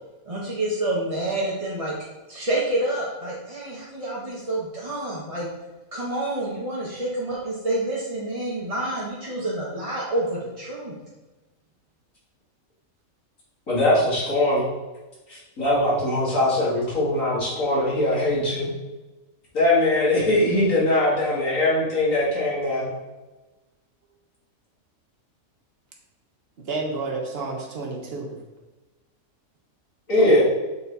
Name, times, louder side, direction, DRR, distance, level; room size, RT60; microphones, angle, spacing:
voice 1, 0.3-1.9 2.3-5.5 5.9-10.9, right 1 dB, 25° right, -7 dB, 1.1 m, -28 dB
voice 2, 13.7-14.7 15.3-18.7 19.5-22.9 30.1-30.4, left 1 dB, 65° left, -7 dB, 2.8 m, -21 dB
voice 3, 26.7-28.3 30.1-30.4, right 3 dB, 45° right, 0 dB, 1.4 m, -30 dB
7.0 x 4.3 x 4.1 m, 1.1 s
omnidirectional pair, 1.5 m